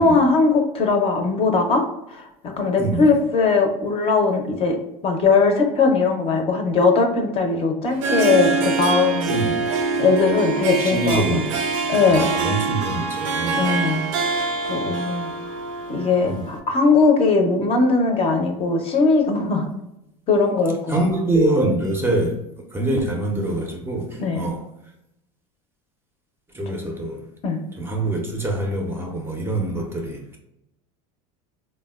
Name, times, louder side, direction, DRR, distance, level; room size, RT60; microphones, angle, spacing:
voice 1, 0.0-2.3 2.6-4.8 5.0-9.4 10.0-11.4 11.9-12.3 13.5-14.0 14.3-15.3 15.9-19.7 20.3-21.1 24.2-24.5 27.4-27.6, left 4 dB, 35° left, 0.5 m, -19 dB
voice 2, 2.8-3.1 9.3-9.6 10.8-11.6 12.1-13.7 16.3-16.5 20.9-22.4 22.7-24.7 26.5-27.3 27.8-30.4, right 2 dB, 15° right, 0.4 m, -24 dB
Harp, 7.8-16.6, right 4 dB, 80° right, 0.5 m, -25 dB
3.3 x 2.1 x 2.3 m
supercardioid pair, 120°, 17 cm